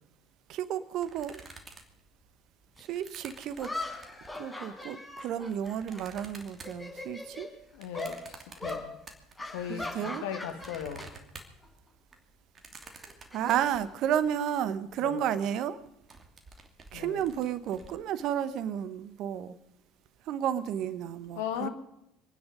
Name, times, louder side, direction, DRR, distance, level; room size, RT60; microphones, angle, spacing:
voice 1, 0.5-1.4 2.8-3.7 4.4-7.5 9.7-10.2 13.3-15.8 16.9-19.6 20.3-21.7, right 9 dB, 60° right, 15 dB, 1.1 m, -32 dB
sound 1, 1.0-4.4 5.1-9.6 10.0-14.5 14.9-15.0 15.2-15.5 15.8-17.9, right 4 dB, 35° right, 2.7 m, -51 dB
sound 2, 2.8-2.9 3.6-6.2 6.5-7.5 7.9-8.2 8.6-8.8 9.4-11.1 11.4-11.7 12.8-14.3, left 2 dB, 15° left, 4.9 m, -40 dB
voice 2, 7.7-8.2 8.6-9.0 9.5-11.1 15.0-15.2 16.9-17.2 21.3-21.7, left 9 dB, 75° left, 8 dB, 1.6 m, -37 dB
26.0 x 10.0 x 5.2 m, 0.83 s
hypercardioid pair, 60°, 0 cm